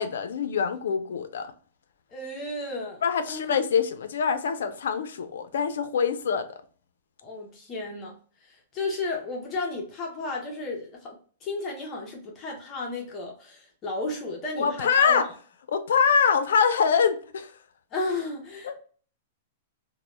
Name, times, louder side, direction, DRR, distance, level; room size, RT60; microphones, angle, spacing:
voice 1, 0.0-1.5 3.0-6.6 14.6-15.3 15.7-17.5 18.6-18.7, left 6 dB, 85° left, 0.4 m, -24 dB
voice 2, 2.1-3.0 3.3-3.6 7.2-8.1 8.4-11.2 11.4-15.3 17.9-18.8, left 2 dB, 25° left, 0.5 m, -33 dB
2.1 x 2.0 x 3.0 m
supercardioid pair, 160°, 0 cm